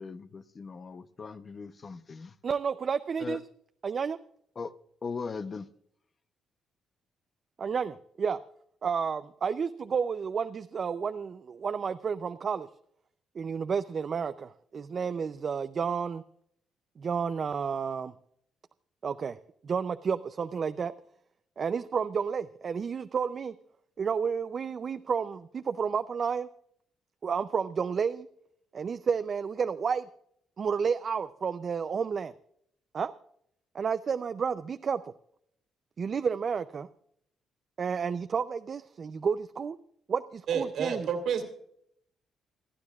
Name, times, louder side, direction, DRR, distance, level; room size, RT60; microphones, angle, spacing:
voice 1, 0.0-2.3 3.2-3.4 4.6-4.7 5.0-5.7, left 4 dB, 40° left, 0.7 m, -39 dB
voice 2, 2.4-3.4 3.8-4.2 7.6-8.4 8.8-12.7 13.4-16.2 17.0-18.1 19.0-19.4 19.6-20.9 21.6-23.5 24.0-26.5 27.2-28.3 28.7-30.1 30.6-32.3 32.9-33.1 33.7-35.1 36.0-36.9 37.8-39.8 40.1-41.1, right 6 dB, 45° right, 0.5 m, -31 dB
voice 3, 40.5-41.4, right 7 dB, 70° right, 2.4 m, -29 dB
27.5 x 9.7 x 2.4 m
cardioid pair, 90°, 0 cm